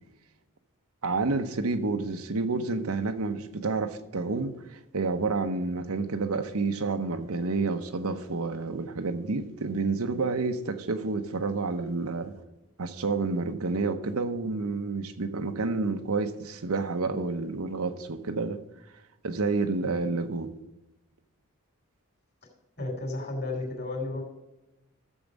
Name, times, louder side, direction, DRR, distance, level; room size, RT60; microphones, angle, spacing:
voice 1, 1.0-12.4 12.8-18.6 19.2-20.5, right 3 dB, 85° right, 0.9 m, -29 dB
voice 2, 22.8-24.2, left 2 dB, 50° left, 2.9 m, -32 dB
14.0 x 7.2 x 5.3 m
head